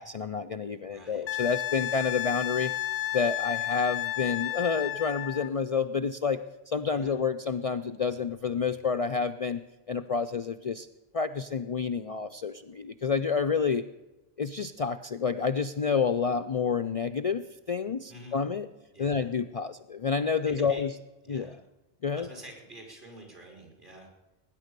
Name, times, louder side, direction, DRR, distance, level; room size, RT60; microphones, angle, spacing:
voice 1, 0.0-2.7 3.1-9.6 9.9-10.9 11.1-13.8 14.4-18.7 19.0-20.9 21.3-21.5 22.0-22.3, left 5 dB, 45° left, 9 dB, 0.5 m, -29 dB
voice 2, 0.8-1.3 6.9-7.2 18.1-18.4 18.9-19.3 20.6-20.8 21.2-21.6 22.1-24.1, right 1 dB, 55° right, 1 dB, 4.7 m, -48 dB
Wind instrument woodwind instrument, 1.3-5.5 8.2-8.3, left 14 dB, 75° left, 0.9 m, -32 dB
19.5 x 10.0 x 6.7 m, 1.0 s
omnidirectional pair, 1.1 m